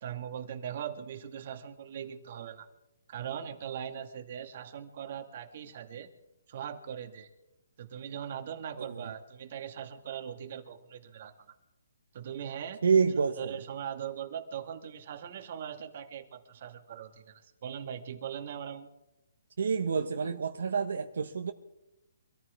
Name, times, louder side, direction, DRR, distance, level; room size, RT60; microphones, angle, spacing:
voice 1, 0.0-2.7 3.1-6.1 6.5-7.3 7.8-11.6 12.1-12.8 13.4-18.9, right 9 dB, 45° right, 7 dB, 1.9 m, -40 dB
voice 2, 12.8-13.5 19.6-21.5, right 5 dB, 70° right, 6 dB, 1.2 m, -28 dB
25.0 x 14.5 x 3.5 m, 0.91 s
hypercardioid pair, 160°, 0 cm